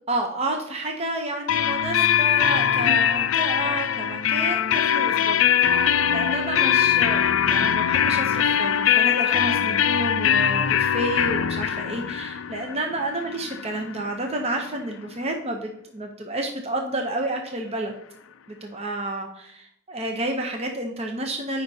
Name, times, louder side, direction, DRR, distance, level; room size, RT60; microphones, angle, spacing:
voice 1, 0.1-18.0 18.5-21.6, right 1 dB, 30° right, 3 dB, 0.7 m, -30 dB
sound 1, 1.5-15.1, left 9 dB, 75° left, 0.4 m, -22 dB
13.5 x 5.2 x 2.8 m, 0.72 s
head